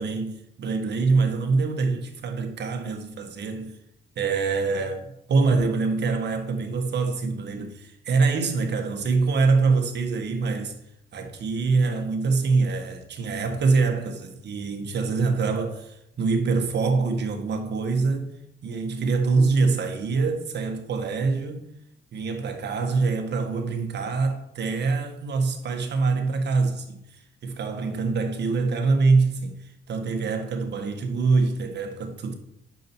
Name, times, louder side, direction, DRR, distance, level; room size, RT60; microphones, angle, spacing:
voice 1, 0.0-3.8 4.2-10.7 11.1-18.3 18.6-21.6 22.1-27.0 27.4-32.3, right 4 dB, 60° right, 1.6 m, -24 dB
9.0 x 5.7 x 4.6 m
cardioid pair, 90°, 20 cm